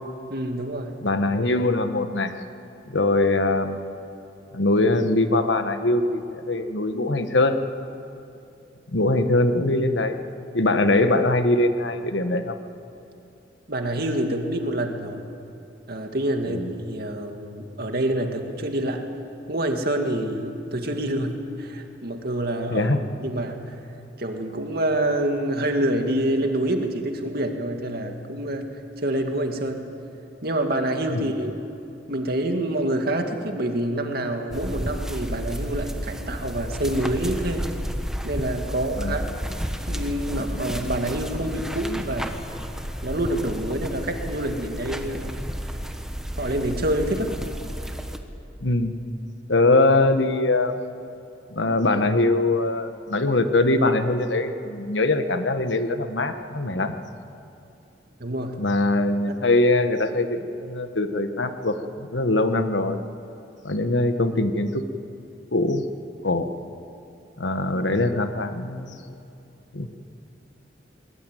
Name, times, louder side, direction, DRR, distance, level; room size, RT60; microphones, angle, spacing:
voice 1, 0.3-1.0 13.7-15.2 15.9-19.0 19.5-22.9 23.2-23.8 24.2-28.7 29.0-29.8 30.4-31.6 32.1-37.7 38.2-39.5 39.9-42.4 43.0-45.4 46.4-47.4 58.2-58.6 59.3-59.4, right 1 dB, 60° right, 4 dB, 2.3 m, -27 dB
voice 2, 1.0-2.3 2.9-3.9 4.5-7.6 8.9-10.2 10.5-12.6 16.5-16.7 22.7-23.0 31.1-31.3 39.0-39.2 48.6-49.0 49.5-50.7 51.5-56.9 58.6-63.0 63.6-64.8 65.5-65.8 66.2-66.5 67.4-69.1 69.7-69.9, left 2 dB, 85° left, 8 dB, 1.4 m, -22 dB
sound 1, 34.5-48.2, equal, 5° right, 1.3 m, -32 dB
21.0 x 20.5 x 9.2 m, 2.7 s
head